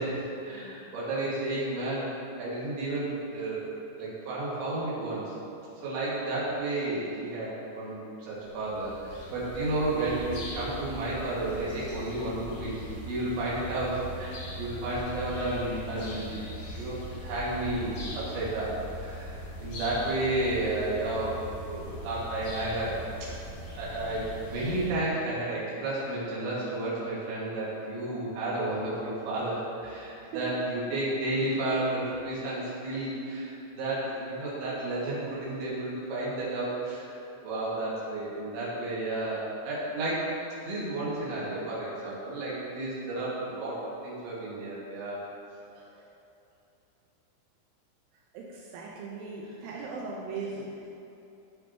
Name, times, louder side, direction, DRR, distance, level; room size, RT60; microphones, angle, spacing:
voice 1, 0.0-2.1 2.4-3.6 4.0-5.3 5.8-12.8 13.1-16.5 16.8-21.4 21.7-22.9 23.2-23.3 23.7-37.1 37.4-40.3 40.6-45.2 49.4-49.8, right 2 dB, 70° right, -7 dB, 4.0 m, -32 dB
sound 1, 8.3-24.9, equal, 60° left, 1.3 m, -40 dB
voice 2, 48.3-50.9, right 4 dB, 85° right, -3 dB, 3.1 m, -38 dB
14.5 x 5.5 x 2.9 m, 2.8 s
omnidirectional pair, 5.8 m